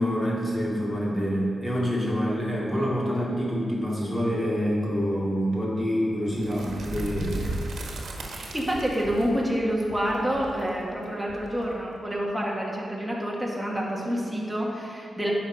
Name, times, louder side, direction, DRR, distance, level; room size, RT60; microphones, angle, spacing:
voice 1, 0.0-7.6, equal, 20° left, -5 dB, 2.4 m, -26 dB
sound 1, 6.3-12.1, right 2 dB, 80° right, 1.2 m, -36 dB
voice 2, 8.3-15.3, equal, 5° right, -3 dB, 1.9 m, -28 dB
10.5 x 6.0 x 5.1 m, 2.3 s
cardioid pair, 95°, 0 cm